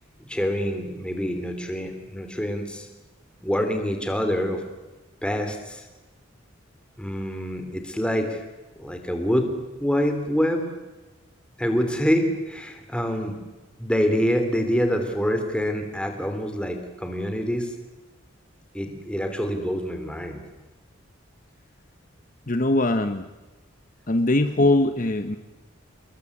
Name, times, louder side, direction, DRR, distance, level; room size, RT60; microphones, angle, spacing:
voice 1, 0.2-2.9 3.4-4.6 5.2-5.8 7.0-8.4 8.8-9.5 9.8-10.7 11.6-13.4 13.8-17.7 18.7-20.4, equal, 5° left, 6 dB, 3.3 m, -26 dB
voice 2, 22.5-23.3 24.1-25.4, left 2 dB, 40° left, 8 dB, 1.1 m, -21 dB
27.5 x 21.5 x 8.5 m, 1.2 s
head